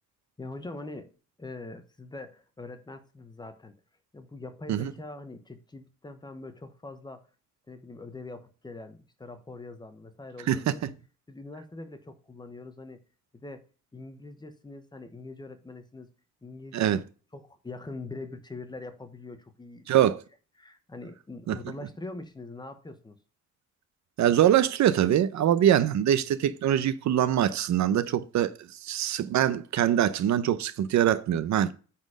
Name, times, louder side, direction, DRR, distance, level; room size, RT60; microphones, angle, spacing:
voice 1, 0.4-1.1 1.4-3.7 4.1-7.3 7.7-10.9 11.3-13.0 13.3-13.6 13.9-16.1 16.4-17.0 17.3-20.1 20.6-23.2, left 2 dB, 15° left, 0.9 m, -43 dB
voice 2, 10.5-10.9 16.7-17.0 19.9-20.2 21.5-21.6 24.2-31.7, right 11 dB, 65° right, 0.7 m, -24 dB
9.1 x 4.4 x 4.9 m
wide cardioid pair, 170°, 30 cm